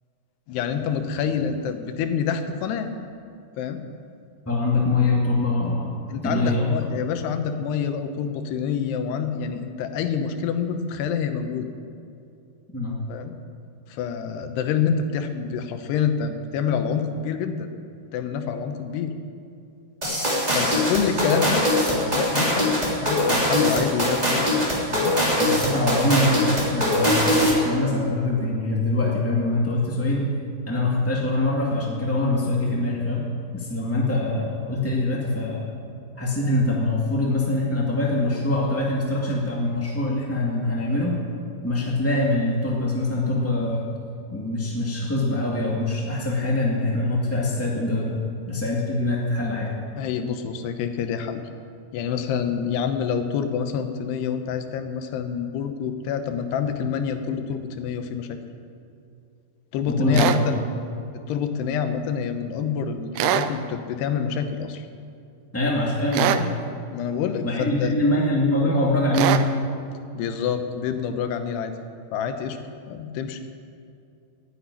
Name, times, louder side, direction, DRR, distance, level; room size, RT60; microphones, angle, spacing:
voice 1, 0.5-2.9 3.6-3.8 6.1-11.7 13.1-13.3 13.9-17.7 18.1-19.1 20.5-22.7 23.0-24.5 24.9-25.2 50.0-51.4 51.9-58.4 59.7-60.6 61.1-64.9 66.9-67.9 70.1-71.7 72.1-72.6 72.9-73.5, left 7 dB, 80° left, 7 dB, 3.0 m, -27 dB
voice 2, 4.4-5.9 6.2-6.9 12.7-12.9 25.4-30.2 30.7-33.2 33.5-35.6 36.2-41.1 41.6-43.9 44.3-48.2 48.5-49.7 59.9-60.4 65.5-66.5 67.4-69.4, left 2 dB, 15° left, -4 dB, 0.5 m, -23 dB
sound 1, 20.0-27.7, left 1 dB, 10° right, 2.3 m, -22 dB
sound 2, 60.1-60.4 63.2-63.5 66.1-66.5 69.1-69.5, right 11 dB, 80° right, 2.1 m, -22 dB
12.5 x 10.0 x 9.8 m, 2.6 s
omnidirectional pair, 4.8 m